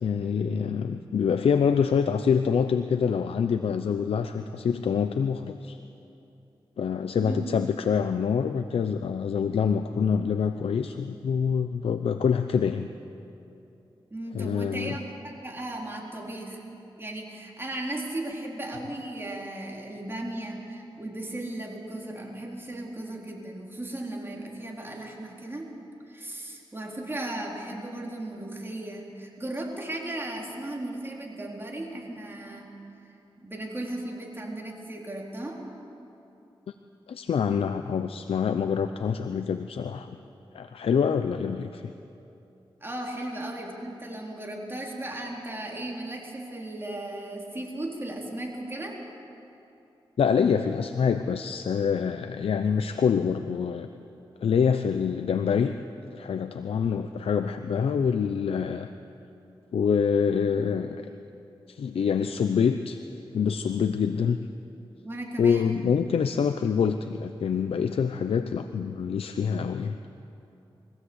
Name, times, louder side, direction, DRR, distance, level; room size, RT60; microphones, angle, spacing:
voice 1, 0.0-5.8 6.8-12.9 14.3-15.0 37.1-40.2 40.5-41.9 50.2-53.9 54.4-55.7 56.1-58.9 59.7-61.1 61.7-63.0 63.3-64.4 65.4-70.0, left 6 dB, 80° left, 9 dB, 0.7 m, -26 dB
voice 2, 7.2-7.5 14.1-16.6 17.0-25.7 26.1-32.7 33.4-35.6 42.8-49.0 65.0-65.8, right 1 dB, 25° right, -1 dB, 4.1 m, -36 dB
23.0 x 16.0 x 8.1 m, 2.8 s
cardioid pair, 60°, 10 cm